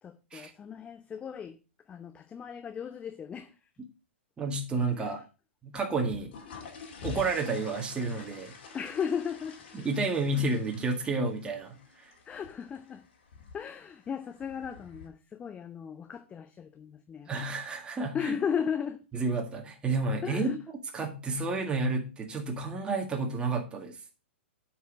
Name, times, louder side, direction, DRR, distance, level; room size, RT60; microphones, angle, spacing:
voice 1, 0.0-1.6 1.8-3.7 5.0-5.2 8.7-9.6 12.2-13.1 13.5-17.3 18.1-19.0 20.2-20.6, left 7 dB, 20° left, 0.8 m, -36 dB
voice 2, 4.4-5.2 5.6-6.3 7.0-8.5 9.8-12.1 17.3-18.3 19.1-20.6 20.9-24.0, right 3 dB, 15° right, 1.8 m, -31 dB
sound 1, 6.1-15.1, left 5 dB, 55° left, 2.4 m, -47 dB
8.0 x 4.7 x 6.4 m
figure-of-eight pair, 110°, 7 cm